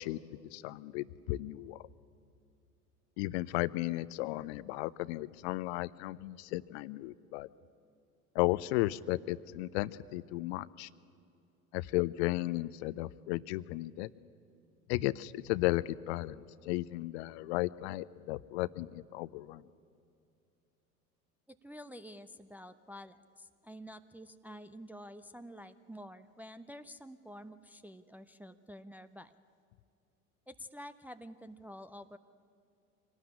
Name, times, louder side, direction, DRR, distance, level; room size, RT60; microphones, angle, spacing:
voice 1, 0.0-1.8 3.2-7.5 8.3-10.9 11.7-14.1 14.9-19.6, left 18 dB, 50° left, 19 dB, 0.7 m, -34 dB
voice 2, 21.5-29.3 30.5-32.2, equal, 5° right, 8 dB, 0.5 m, -49 dB
25.5 x 18.5 x 9.8 m, 2.5 s
figure-of-eight pair, 75°, 45 cm